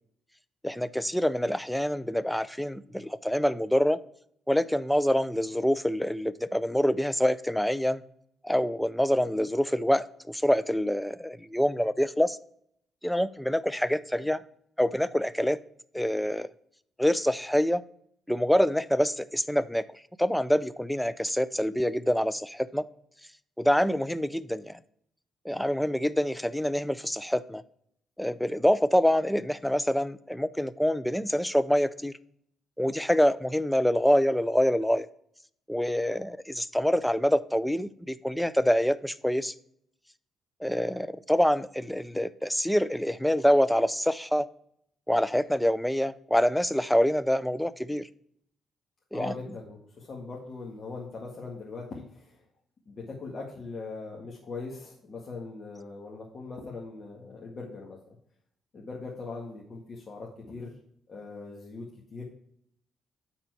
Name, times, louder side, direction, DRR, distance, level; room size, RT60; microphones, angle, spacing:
voice 1, 0.6-4.0 4.5-8.0 8.4-12.4 13.0-14.4 14.8-15.6 15.9-16.5 17.0-17.8 18.3-22.9 23.6-24.8 25.4-27.6 28.2-32.2 32.8-35.1 35.7-39.5 40.6-44.5 45.1-48.1 49.1-49.3, equal, 5° left, 16 dB, 0.4 m, -26 dB
voice 2, 49.1-52.4 52.9-58.0 58.7-60.7 61.1-61.8 62.1-62.2, left 3 dB, 45° left, -3 dB, 1.8 m, -40 dB
9.2 x 4.3 x 4.7 m, 0.67 s
cardioid pair, 90°, 0 cm